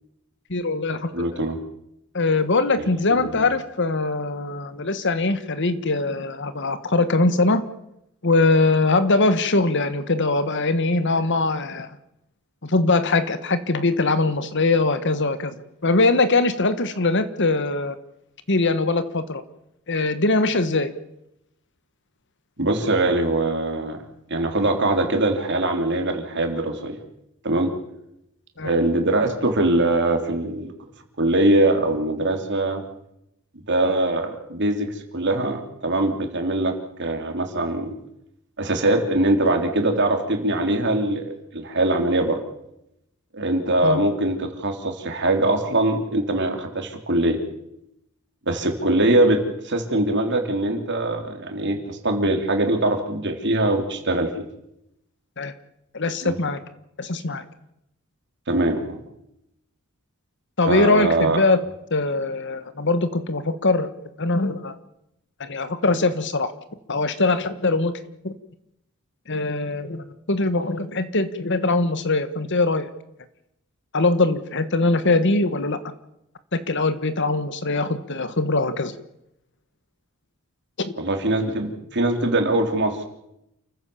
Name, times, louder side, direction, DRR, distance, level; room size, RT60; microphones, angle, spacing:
voice 1, 0.5-1.3 2.1-7.6 8.2-12.0 12.6-18.0 18.5-19.4 19.9-20.9 28.6-28.8 43.8-44.0 55.4-55.5 55.9-56.6 57.0-57.4 60.6-61.6 61.9-64.8 65.4-66.5 66.9-68.3 69.3-72.9 73.9-75.8 76.5-78.9 80.8-80.9, left 3 dB, 55° left, 12 dB, 1.5 m, -22 dB
voice 2, 1.1-1.6 2.8-3.3 22.6-24.0 24.3-27.0 27.4-27.8 28.6-30.7 31.2-32.8 33.7-37.9 38.6-42.4 43.3-47.4 48.5-54.3 56.2-56.3 58.5-59.0 60.7-61.4 81.0-83.0, right 2 dB, 55° right, 4 dB, 3.5 m, -22 dB
28.5 x 15.0 x 7.1 m, 0.82 s
head